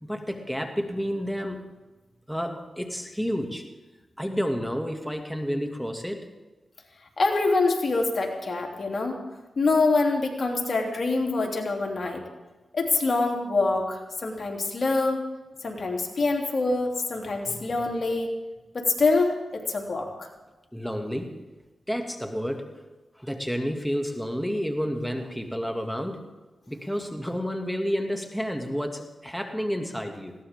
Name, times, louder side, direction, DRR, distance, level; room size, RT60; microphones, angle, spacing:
voice 1, 0.0-1.6 2.3-3.7 4.2-6.3 17.5-17.6 20.7-21.3 21.9-22.8 23.2-26.2 26.7-30.3, equal, ahead, 4 dB, 2.3 m, -30 dB
voice 2, 7.2-9.2 9.6-12.2 12.7-15.2 15.6-18.3 18.7-20.3, left 3 dB, 60° left, 1 dB, 3.2 m, -25 dB
21.0 x 17.0 x 3.7 m, 1.1 s
supercardioid pair, 40°, 0 cm